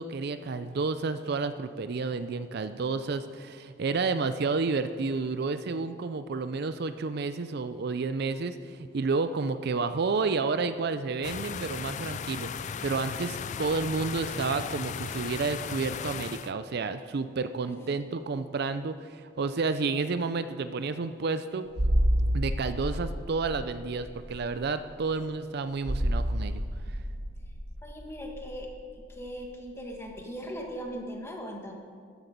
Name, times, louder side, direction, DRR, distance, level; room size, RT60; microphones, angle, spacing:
voice 1, 0.0-21.7 22.3-26.6, right 4 dB, 55° right, 11 dB, 0.5 m, -30 dB
sound 1, 11.2-16.5, left 7 dB, 40° left, 0.3 m, -36 dB
voice 2, 17.7-18.1 27.8-28.7 29.1-31.7, equal, 15° left, 1 dB, 1.5 m, -39 dB
sound 2, 21.7-30.2 30.4-30.6, equal, 85° right, 1.6 m, -30 dB
14.0 x 10.0 x 5.2 m, 2.1 s
head